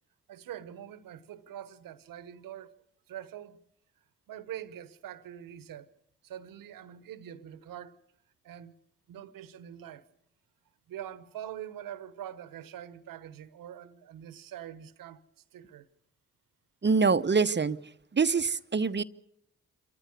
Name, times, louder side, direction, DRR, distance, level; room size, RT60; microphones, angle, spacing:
voice 1, 0.3-2.7 3.1-3.6 4.3-5.9 6.2-8.0 8.4-8.7 9.1-10.0 10.9-15.2 15.5-15.9, right 10 dB, 75° right, 1.2 m, -44 dB
voice 2, 16.8-17.8 18.1-19.0, right 5 dB, 30° right, 0.9 m, -25 dB
27.0 x 14.0 x 8.2 m
hypercardioid pair, 40°, 34 cm